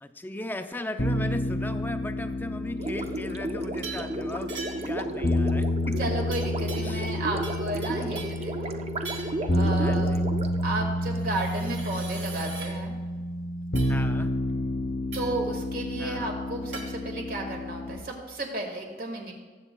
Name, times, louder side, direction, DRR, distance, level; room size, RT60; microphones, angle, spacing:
voice 1, 0.0-4.5 4.8-6.2 6.8-7.1 9.7-10.2 13.9-14.3 16.0-16.3, left 1 dB, 10° left, 8 dB, 0.5 m, -37 dB
sound 1, 1.0-18.0, left 1 dB, 65° left, 0.8 m, -30 dB
Gurgling, 2.8-11.2, right 2 dB, 35° right, 0.6 m, -34 dB
sound 2, 3.8-4.1 4.5-5.0 6.3-7.2 7.4-8.4 9.0-9.4 11.1-12.7 13.8-13.9 15.1-15.4 16.7-16.9, right 4 dB, 75° right, 2.6 m, -41 dB
voice 2, 6.0-8.9 9.5-10.2 10.6-12.9 15.1-19.3, right 2 dB, 55° right, 1 dB, 1.8 m, -33 dB
20.0 x 7.9 x 2.2 m, 1.4 s
head